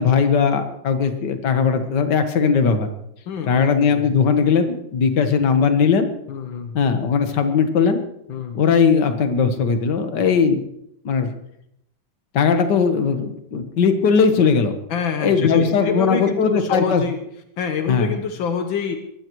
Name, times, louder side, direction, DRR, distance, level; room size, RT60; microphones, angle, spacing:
voice 1, 0.0-2.9 3.5-6.1 6.7-8.0 8.5-10.6 11.1-11.3 12.3-14.8 15.2-17.0 17.9-18.1, left 6 dB, 65° left, 7 dB, 1.9 m, -18 dB
voice 2, 3.3-4.1 6.3-6.8 8.3-8.6 14.9-17.2 17.6-19.0, left 6 dB, 80° left, 6 dB, 1.8 m, -26 dB
21.5 x 16.0 x 3.1 m, 0.78 s
omnidirectional pair, 2.1 m